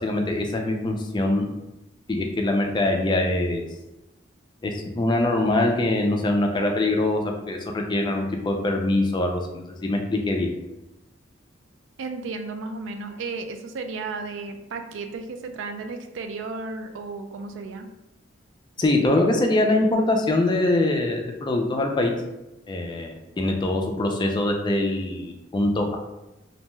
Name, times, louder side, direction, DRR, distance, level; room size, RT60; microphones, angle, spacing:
voice 1, 0.0-1.4 2.1-3.7 4.6-10.5 18.8-22.1 22.7-26.0, left 2 dB, 25° left, 3 dB, 0.3 m, -23 dB
voice 2, 12.0-17.9, right 3 dB, 70° right, 7 dB, 0.3 m, -34 dB
2.6 x 2.2 x 3.0 m, 0.94 s
head